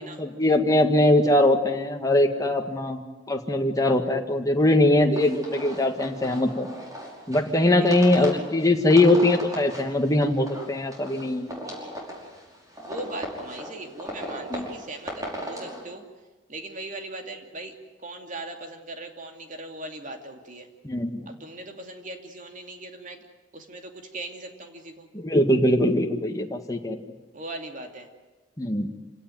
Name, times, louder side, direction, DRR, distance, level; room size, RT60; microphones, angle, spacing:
voice 1, 0.2-3.0 3.3-6.7 7.3-11.5 14.5-14.7 20.8-21.3 25.1-27.0 28.6-28.9, left 1 dB, 20° left, 3 dB, 1.9 m, -21 dB
sound 1, 5.1-15.8, equal, 20° right, 5.5 m, -38 dB
voice 2, 7.8-8.3 12.8-16.0 16.5-17.7 18.0-20.7 21.3-23.2 23.5-25.1 27.3-28.1, right 2 dB, 40° right, 4 dB, 2.7 m, -39 dB
27.0 x 17.5 x 9.4 m, 1.2 s
head